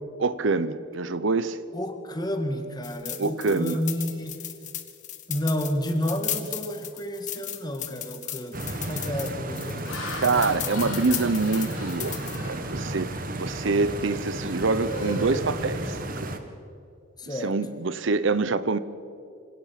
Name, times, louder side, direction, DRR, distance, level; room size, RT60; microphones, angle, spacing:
voice 1, 0.2-1.6 3.2-3.8 10.2-13.1 13.4-16.3 17.4-18.8, right 3 dB, 65° right, 0.7 m, -25 dB
voice 2, 1.7-4.5 5.3-9.9 12.1-12.2 17.2-17.5, equal, 20° left, 1.8 m, -31 dB
sound 1, 2.8-12.4, left 12 dB, 35° left, 1.4 m, -36 dB
Laughter, 7.7-8.0 8.6-8.9 9.5-13.3 13.7-14.0 14.4-16.3, left 1 dB, 80° left, 3.6 m, -39 dB
Stream, 8.5-16.4, right 1 dB, 45° right, 1.5 m, -33 dB
26.0 x 17.5 x 5.9 m
head